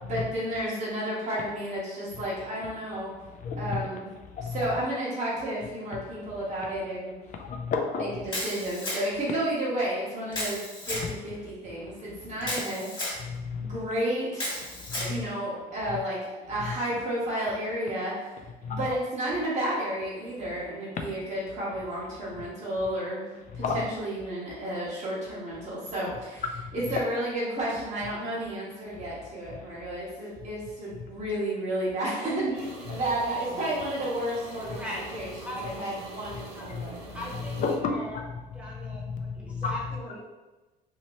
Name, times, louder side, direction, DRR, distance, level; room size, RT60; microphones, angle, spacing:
voice 1, 0.0-3.1 3.6-4.1 4.5-7.1 8.0-12.9 13.6-14.7 15.0-18.1 18.7-23.2 23.5-26.4 26.7-32.5 32.9-34.8 35.1-37.1, right 1 dB, 45° right, -7 dB, 1.1 m, -32 dB
voice 2, 3.4-3.8 4.3-4.7 7.3-8.1 11.0-11.1 13.2-13.8 14.7-15.3 16.6-16.7 18.6-19.0 23.5-23.8 26.6-26.7 28.9-29.0 29.7-29.8 32.9-33.0 34.7-34.8 36.7-37.2 37.6-38.0 38.3-38.4 38.6-40.0, left 5 dB, 50° left, 3 dB, 0.5 m, -32 dB
Camera, 8.3-9.3 10.3-11.1 12.4-13.2 14.3-15.1, left 1 dB, 25° left, 1.2 m, -33 dB
voice 3, 32.2-32.6 34.7-35.1 35.4-35.7 36.5-36.7 37.1-38.2 38.5-40.2, left 1 dB, 5° right, -5 dB, 1.0 m, -40 dB
sound 1, 32.5-37.8, right 2 dB, 85° right, 0.8 m, -44 dB
2.8 x 2.8 x 3.1 m, 1.2 s
cardioid pair, 110°, 17 cm